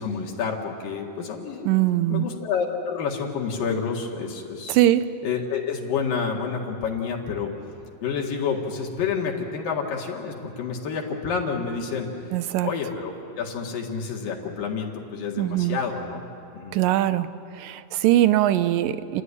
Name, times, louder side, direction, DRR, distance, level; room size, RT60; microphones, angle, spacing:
voice 1, 0.0-1.8 2.1-4.8 5.2-7.5 8.0-12.1 12.6-16.2 16.5-16.8, left 6 dB, 75° left, -1 dB, 3.5 m, -29 dB
voice 2, 1.7-2.3 4.7-5.0 12.3-12.7 15.4-15.8 16.7-17.3 17.6-19.2, right 14 dB, 80° right, 12 dB, 2.3 m, -21 dB
29.5 x 12.0 x 9.8 m, 2.9 s
omnidirectional pair, 4.0 m